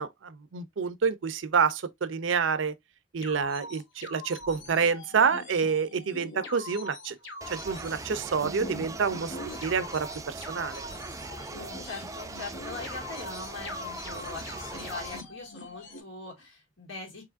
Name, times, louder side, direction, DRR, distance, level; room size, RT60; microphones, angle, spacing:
voice 1, 0.0-2.7 3.1-7.2 7.5-9.4 9.6-10.8, right 6 dB, 75° right, 0.5 m, -28 dB
sound 1, 3.2-16.0, left 2 dB, 70° left, 1.2 m, -43 dB
sound 2, 7.4-15.2, right 3 dB, 15° right, 0.4 m, -41 dB
voice 2, 11.5-17.2, left 3 dB, 90° left, 2.3 m, -41 dB
4.8 x 3.0 x 2.5 m
head